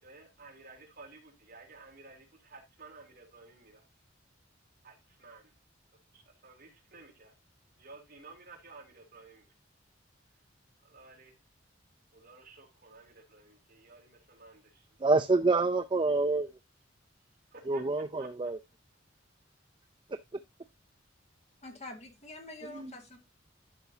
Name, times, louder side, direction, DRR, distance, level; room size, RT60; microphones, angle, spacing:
voice 1, 0.0-3.9 4.8-5.5 6.1-7.3 7.8-9.5 10.8-11.4 12.1-15.2 17.5-17.8 18.2-18.5, right 3 dB, 50° right, 3.0 m, -54 dB
voice 2, 15.0-16.5 17.7-18.6 22.7-22.9, right 3 dB, 25° right, 0.4 m, -27 dB
voice 3, 21.6-23.2, left 2 dB, 35° left, 2.1 m, -46 dB
12.0 x 5.8 x 2.8 m
head